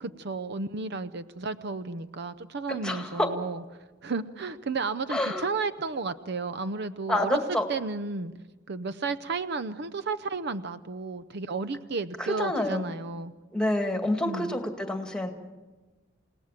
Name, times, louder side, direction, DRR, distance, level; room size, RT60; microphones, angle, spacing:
voice 1, 0.0-3.6 4.0-7.4 7.7-8.3 8.7-13.3 14.2-14.6, right 4 dB, 60° right, 14 dB, 0.7 m, -33 dB
voice 2, 2.7-3.3 5.1-5.4 7.1-7.6 12.4-12.9 13.5-15.3, left 1 dB, 5° left, 6 dB, 2.1 m, -28 dB
28.5 x 18.0 x 7.4 m, 1.2 s
head